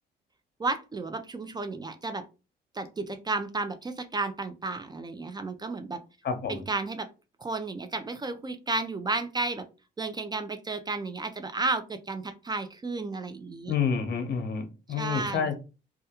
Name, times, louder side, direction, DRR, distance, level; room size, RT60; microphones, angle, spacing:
voice 1, 0.6-2.2 2.7-6.0 6.5-7.1 7.4-9.7 10.0-13.7 14.9-15.5, right 3 dB, 20° right, 0.3 m, -32 dB
voice 2, 6.2-6.6 13.7-15.6, left 6 dB, 55° left, 0.7 m, -29 dB
2.2 x 2.2 x 2.8 m
cardioid pair, 90°, 20 cm